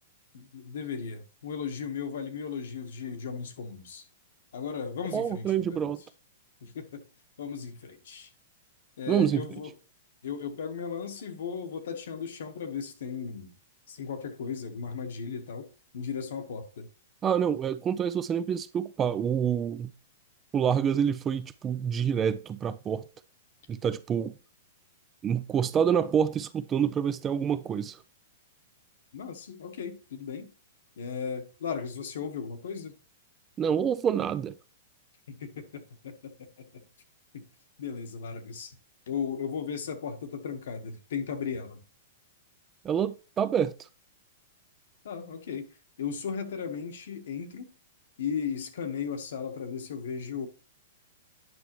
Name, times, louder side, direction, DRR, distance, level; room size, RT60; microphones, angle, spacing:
voice 1, 0.3-4.0 4.5-5.9 6.6-7.0 7.4-8.3 9.0-9.7 10.2-13.5 13.9-16.9 29.1-30.5 31.0-32.9 35.3-36.8 37.3-37.4 37.8-38.7 39.1-41.8 45.0-45.7 46.0-47.7 48.2-50.5, left 6 dB, 75° left, 1.3 m, -36 dB
voice 2, 5.1-6.0 9.1-9.4 17.2-19.9 20.5-23.0 23.7-24.3 25.2-28.0 33.6-34.5 42.8-43.7, right 8 dB, 20° right, 0.4 m, -27 dB
9.4 x 5.6 x 3.1 m
hypercardioid pair, 145°, 0 cm